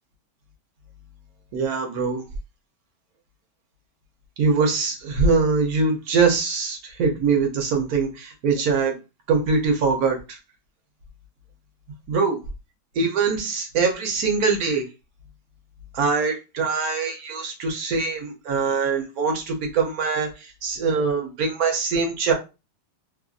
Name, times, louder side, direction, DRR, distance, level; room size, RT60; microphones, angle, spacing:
voice 1, 1.5-2.2 4.4-9.0 9.3-10.4 12.1-12.4 13.0-14.9 15.9-22.3, right 4 dB, 65° right, 3 dB, 1.0 m, -23 dB
3.0 x 2.4 x 2.4 m, 0.28 s
omnidirectional pair, 1.9 m